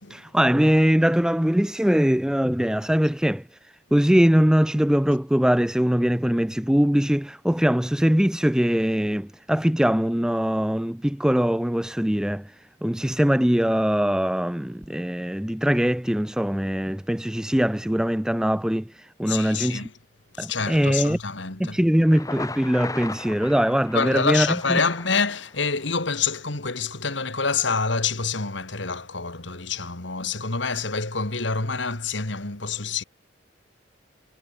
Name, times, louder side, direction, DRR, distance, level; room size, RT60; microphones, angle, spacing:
voice 1, 0.1-19.9 20.4-21.2 21.6-24.8, equal, 5° right, 0.4 m, -22 dB
voice 2, 19.3-19.9 20.3-21.8 23.9-33.0, left 4 dB, 70° left, 2.7 m, -27 dB
Thunder, 21.9-25.9, left 3 dB, 15° left, 1.9 m, -37 dB
head